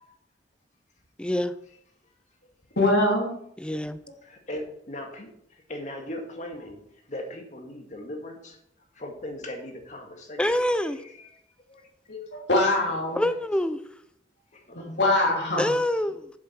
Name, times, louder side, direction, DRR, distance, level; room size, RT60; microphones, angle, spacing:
voice 1, 1.2-1.5 3.6-4.0 10.4-11.0 13.1-13.8 15.6-16.3, left 1 dB, 5° left, 12 dB, 0.4 m, -25 dB
voice 2, 2.8-3.3 12.1-13.2 14.7-15.6, left 1 dB, 80° left, -2 dB, 3.0 m, -23 dB
voice 3, 4.3-5.3 5.7-6.8 7.1-8.5 9.0-11.1 11.7-11.8 12.9-13.2 14.7-14.8 15.3-15.4, left 1 dB, 45° left, 3 dB, 2.0 m, -38 dB
8.0 x 7.5 x 5.9 m, 0.71 s
head